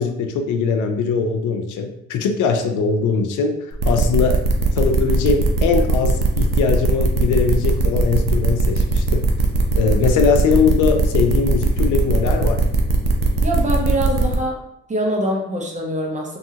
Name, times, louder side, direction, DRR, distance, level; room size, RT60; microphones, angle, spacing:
voice 1, 0.0-4.4 4.7-9.3 9.7-12.6, left 5 dB, 80° left, 5 dB, 0.5 m, -21 dB
sound 1, 3.8-14.4, right 3 dB, 60° right, 0.6 m, -19 dB
voice 2, 13.4-14.6 14.9-16.4, right 1 dB, 25° right, -1 dB, 0.7 m, -23 dB
2.7 x 2.4 x 2.8 m, 0.81 s
cardioid pair, 90°, 30 cm